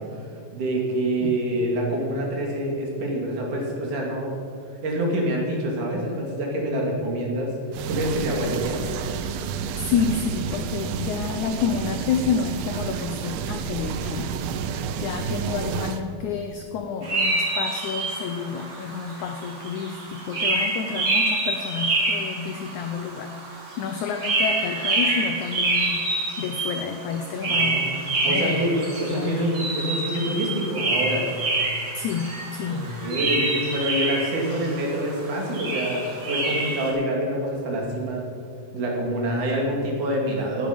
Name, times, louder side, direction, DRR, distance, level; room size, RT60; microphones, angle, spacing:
voice 1, 0.5-4.3 4.8-8.8 27.4-28.0 28.2-31.3 32.6-38.3 38.7-40.7, right 1 dB, 55° right, -1 dB, 3.8 m, -26 dB
sound 1, 7.7-16.0, right 7 dB, 80° right, 2.6 m, -30 dB
voice 2, 9.8-14.4 15.0-26.1 26.4-28.6 29.1-29.5 31.9-32.9, left 6 dB, 80° left, 6 dB, 1.7 m, -29 dB
sound 2, 17.0-36.9, right 2 dB, 35° right, 3.8 m, -27 dB
18.0 x 10.5 x 5.2 m, 2.5 s
omnidirectional pair, 4.4 m